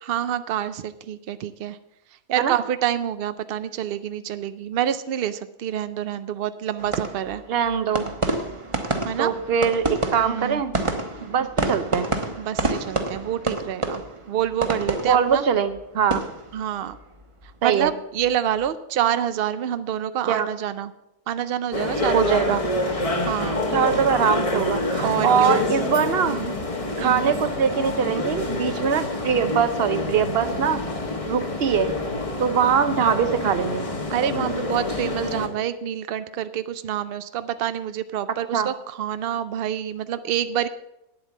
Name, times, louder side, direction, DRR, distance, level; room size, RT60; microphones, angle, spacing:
voice 1, 0.0-1.8 2.3-7.4 9.0-9.3 10.1-10.6 12.4-15.4 16.5-17.0 17.6-20.9 21.3-22.6 23.2-23.7 25.0-25.6 26.2-26.5 27.0-27.4 34.1-40.7, right 10 dB, 85° right, 13 dB, 0.5 m, -27 dB
sound 1, 6.8-17.9 18.2-18.7, right 2 dB, 25° right, 0.9 m, -29 dB
voice 2, 7.5-8.1 9.2-10.7 11.2-12.1 15.0-16.2 17.6-17.9 20.3-20.5 22.1-22.6 23.7-26.4 27.0-30.8 31.3-31.9 32.4-33.8 38.5-38.7, right 7 dB, 50° right, 11 dB, 0.8 m, -22 dB
sound 2, 21.7-35.5, left 2 dB, 25° left, 1.1 m, -27 dB
9.2 x 8.1 x 7.1 m, 0.86 s
omnidirectional pair, 1.6 m